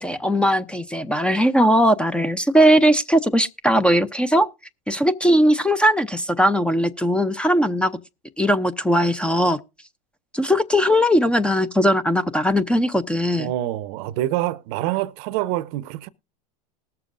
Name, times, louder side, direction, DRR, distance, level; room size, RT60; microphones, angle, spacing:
voice 1, 0.0-4.5 4.9-7.9 8.4-9.6 10.3-13.5, equal, 5° left, 0.5 m, -19 dB
voice 2, 13.4-16.1, right 15 dB, 60° right, 0.6 m, -26 dB
20.0 x 6.9 x 2.5 m
hypercardioid pair, 105°, 20 cm